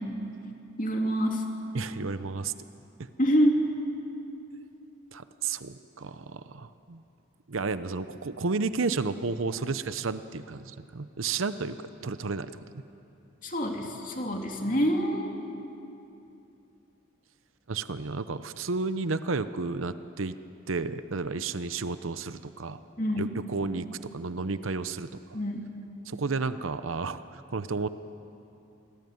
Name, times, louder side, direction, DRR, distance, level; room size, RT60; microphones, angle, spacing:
voice 1, 0.8-1.4 3.2-3.6 13.4-15.3 23.0-23.3 25.3-25.7, equal, 40° left, 2 dB, 3.0 m, -26 dB
voice 2, 1.7-2.5 3.0-3.1 5.1-7.0 7.5-12.8 17.7-20.4 20.7-22.8 23.2-23.8 24.1-25.4 26.1-27.9, right 4 dB, 85° right, 12 dB, 0.8 m, -32 dB
26.5 x 19.5 x 9.4 m, 2.8 s
head